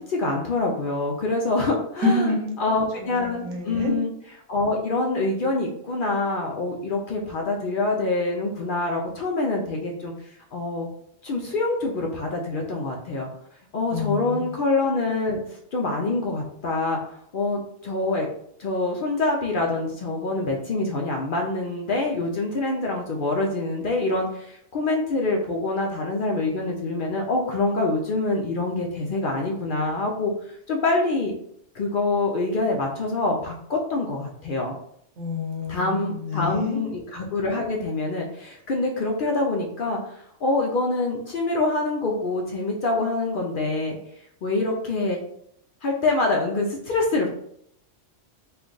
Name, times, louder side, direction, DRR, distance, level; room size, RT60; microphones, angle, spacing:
voice 1, 0.0-2.3 2.6-4.1 4.5-10.1 10.5-10.9 11.2-13.3 13.7-17.0 17.3-18.3 18.6-31.3 31.7-34.8 35.7-44.0 44.4-45.2 45.8-47.3, left 2 dB, 55° left, 0 dB, 0.6 m, -25 dB
voice 2, 2.0-2.8 3.0-3.9 13.9-14.5 35.2-36.8, left 3 dB, 80° right, 0 dB, 1.2 m, -27 dB
3.3 x 2.3 x 3.8 m, 0.70 s
omnidirectional pair, 1.3 m